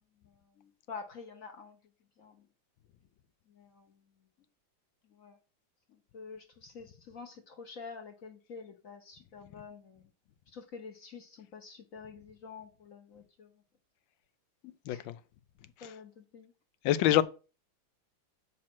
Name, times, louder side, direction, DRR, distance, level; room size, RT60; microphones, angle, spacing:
voice 1, 0.2-1.8 2.2-2.5 3.5-4.0 5.1-5.4 5.9-10.1 10.5-13.5 14.6-15.0 15.8-16.5 17.0-17.2, left 5 dB, 55° left, 1.1 m, -48 dB
voice 2, 16.8-17.2, left 12 dB, 80° left, 1.4 m, -26 dB
7.4 x 4.3 x 5.9 m
omnidirectional pair, 2.1 m